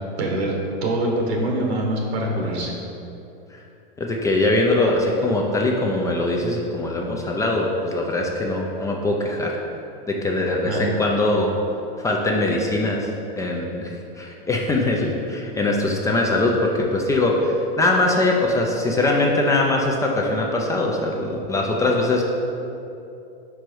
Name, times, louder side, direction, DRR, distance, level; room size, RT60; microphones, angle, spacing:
voice 1, 0.2-0.5 0.8-2.7 10.6-10.9, right 1 dB, 90° right, 0 dB, 1.4 m, -24 dB
voice 2, 4.0-9.6 10.1-11.5 12.0-13.9 14.2-22.2, left 2 dB, 10° left, 0 dB, 0.3 m, -22 dB
5.0 x 4.6 x 4.7 m, 2.7 s
hypercardioid pair, 125°, 31 cm